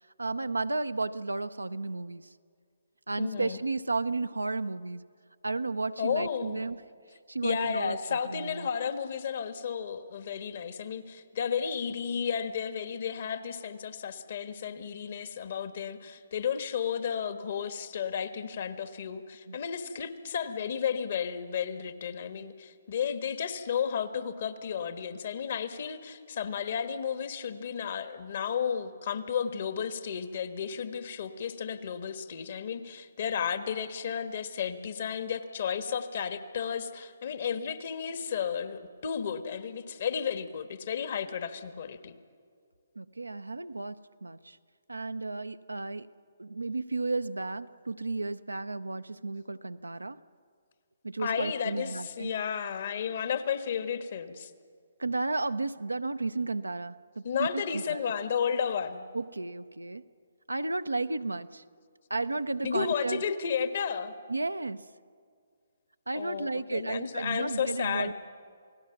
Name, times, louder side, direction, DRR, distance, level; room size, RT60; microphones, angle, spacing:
voice 1, 0.2-2.3 3.1-5.0 5.4-6.8 7.3-8.7 19.5-19.6 43.0-44.6 44.9-46.1 46.4-50.2 51.0-52.4 55.0-58.0 59.1-60.0 60.5-61.6 62.1-63.2 64.3-64.9 66.1-68.1, right 3 dB, 90° right, 12 dB, 0.7 m, -33 dB
voice 2, 3.2-3.6 6.0-6.6 7.4-42.1 51.2-54.5 57.2-59.1 62.6-64.1 66.1-68.1, left 7 dB, 55° left, 10 dB, 1.4 m, -33 dB
28.0 x 18.5 x 5.9 m, 2.1 s
figure-of-eight pair, 135°, 0 cm